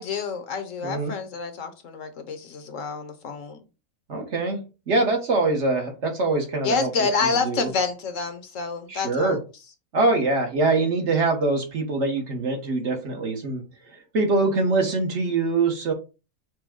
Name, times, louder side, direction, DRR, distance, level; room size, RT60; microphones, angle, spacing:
voice 1, 0.0-3.6 6.6-9.4, left 5 dB, 65° left, 1.1 m, -28 dB
voice 2, 0.8-1.1 4.1-4.6 4.9-6.9 7.2-7.7 8.9-9.4 9.9-13.6 14.1-15.9, right 3 dB, 55° right, 1.3 m, -23 dB
5.9 x 2.2 x 3.6 m
omnidirectional pair, 1.5 m